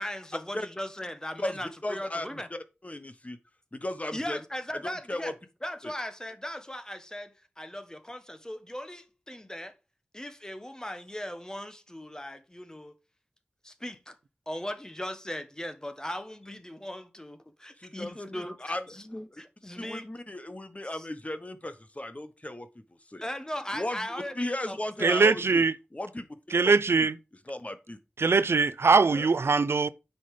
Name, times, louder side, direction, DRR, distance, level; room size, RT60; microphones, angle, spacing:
voice 1, 0.0-2.5 4.1-5.3 5.6-9.7 10.1-13.0 13.6-14.2 14.5-20.1 20.9-21.1 23.2-25.2, left 1 dB, 15° left, 1.4 m, -38 dB
voice 2, 1.4-3.4 3.7-4.4 5.1-5.3 5.8-5.9 17.8-19.0 19.8-22.7 23.1-23.2 23.7-25.6 25.9-26.3 26.6-27.1 27.5-28.0 29.1-29.3, left 1 dB, 35° left, 1.2 m, -36 dB
voice 3, 25.0-25.7 26.5-27.1 28.2-29.9, right 4 dB, 90° right, 0.5 m, -22 dB
9.4 x 5.6 x 5.0 m
wide cardioid pair, 50°, 4 cm